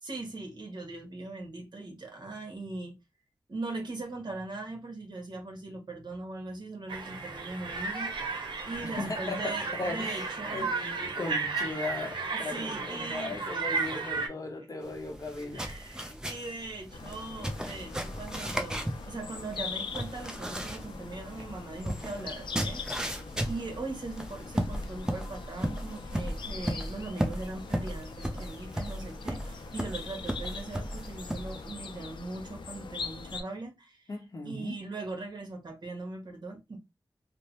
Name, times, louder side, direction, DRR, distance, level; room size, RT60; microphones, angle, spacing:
voice 1, 0.0-3.0 3.5-10.7 12.3-13.4 13.7-14.1 14.7-15.2 15.5-22.8 23.4-34.0 34.4-36.8, right 2 dB, 65° right, 1.2 m, -40 dB
sound 1, 6.9-14.3, right 4 dB, 85° right, 0.7 m, -34 dB
voice 2, 8.8-15.6 34.1-34.8, left 2 dB, 50° left, 0.8 m, -37 dB
sound 2, 14.8-31.7, equal, 10° right, 0.6 m, -36 dB
sound 3, 16.9-33.4, left 4 dB, 85° left, 0.4 m, -42 dB
3.2 x 2.1 x 2.9 m
wide cardioid pair, 75°, 8 cm